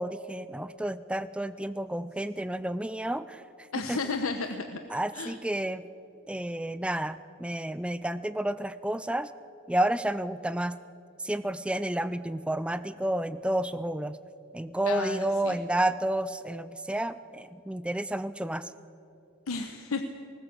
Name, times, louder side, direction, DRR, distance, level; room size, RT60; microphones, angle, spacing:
voice 1, 0.0-3.4 3.9-4.0 4.9-5.8 6.3-9.3 9.7-10.8 11.2-14.2 14.5-18.7, right 1 dB, 5° right, 14 dB, 0.4 m, -30 dB
voice 2, 3.7-4.8 5.1-5.4 14.8-15.6 19.5-20.0, left 4 dB, 85° left, 7 dB, 1.0 m, -33 dB
19.5 x 19.0 x 7.8 m, 2.9 s
head